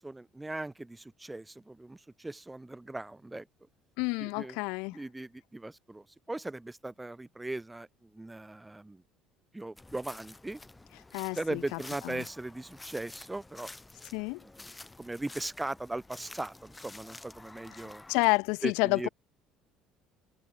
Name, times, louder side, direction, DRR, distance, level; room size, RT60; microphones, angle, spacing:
voice 1, 0.0-3.5 4.2-4.6 4.9-9.0 9.5-10.6 11.3-13.7 14.4-14.7 15.0-18.0 18.6-19.1, right 2 dB, 5° right, 4.1 m, -39 dB
voice 2, 4.0-5.0 11.1-11.6 14.1-14.4 18.1-19.1, left 30 dB, 90° left, 1.4 m, -29 dB
sound 1, 9.8-18.4, left 2 dB, 10° left, 4.3 m, -50 dB
cardioid pair, 155°, 0 cm